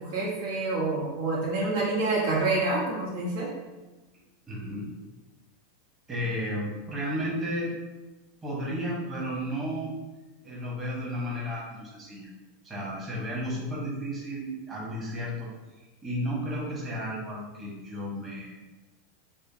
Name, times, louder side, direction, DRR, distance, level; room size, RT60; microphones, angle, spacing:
voice 1, 0.0-3.5, right 2 dB, 70° right, -4 dB, 1.3 m, -27 dB
voice 2, 4.5-4.9 6.1-7.7 8.4-10.0 10.4-12.3 12.6-15.5 15.8-18.5, equal, 25° right, -5 dB, 1.4 m, -33 dB
4.9 x 2.2 x 2.8 m, 1.1 s
hypercardioid pair, 105°, 0 cm